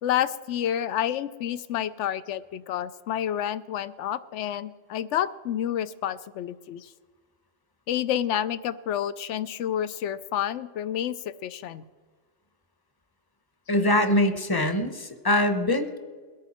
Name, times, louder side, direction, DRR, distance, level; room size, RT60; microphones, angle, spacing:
voice 1, 0.0-6.9 7.9-11.2 11.4-11.8, left 10 dB, 75° left, 16 dB, 0.9 m, -29 dB
voice 2, 13.7-16.0, left 1 dB, 20° left, 9 dB, 0.8 m, -23 dB
22.0 x 9.0 x 4.2 m, 1.5 s
omnidirectional pair, 1.2 m